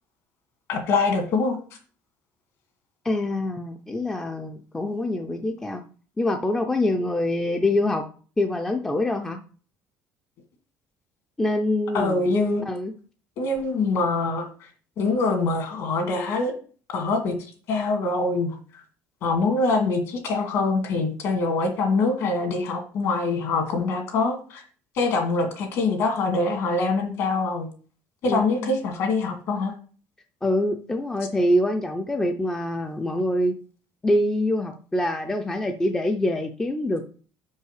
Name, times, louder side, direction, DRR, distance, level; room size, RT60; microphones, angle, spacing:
voice 1, 0.7-1.6 11.9-12.6 13.4-14.5 15.0-16.5 16.9-17.4 17.7-18.5 19.2-24.6 25.0-27.7 28.2-29.7, left 3 dB, 50° left, 4 dB, 2.0 m, -24 dB
voice 2, 3.0-5.8 6.2-8.0 8.4-9.4 11.4-12.3 12.6-12.9 28.3-28.8 30.4-33.5 34.0-37.0, left 1 dB, 10° left, 6 dB, 0.4 m, -25 dB
5.5 x 5.5 x 6.4 m, 0.41 s
cardioid pair, 180°, 6 cm